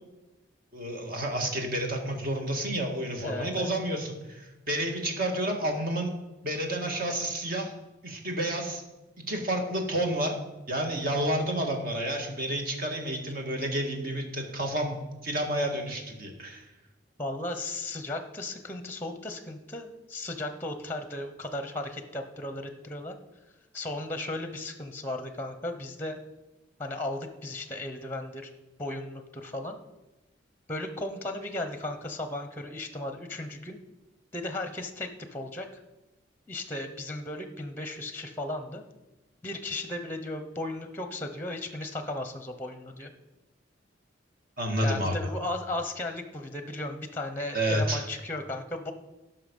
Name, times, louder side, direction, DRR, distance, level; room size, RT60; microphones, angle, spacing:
voice 1, 0.7-6.1 6.4-7.7 8.0-8.8 9.3-10.4 10.7-16.7 44.6-45.1 47.5-48.1, right 1 dB, 50° right, 2 dB, 1.9 m, -30 dB
voice 2, 3.1-3.7 17.2-23.1 23.7-26.2 26.8-28.5 28.8-29.8 30.7-33.8 34.3-35.8 36.5-38.8 39.4-43.1 44.8-48.9, left 1 dB, 10° left, 7 dB, 0.8 m, -35 dB
17.0 x 5.9 x 5.4 m, 1.0 s
head